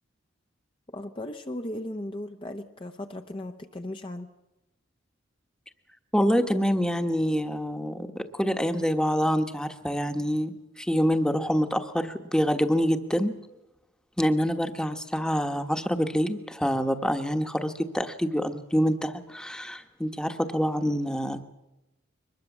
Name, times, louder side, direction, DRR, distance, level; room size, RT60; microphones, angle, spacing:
voice 1, 0.9-4.3, left 1 dB, 25° left, 5 dB, 0.9 m, -36 dB
voice 2, 6.1-13.3 14.2-21.5, equal, 5° left, 7 dB, 1.3 m, -26 dB
23.0 x 20.5 x 7.3 m, 0.96 s
head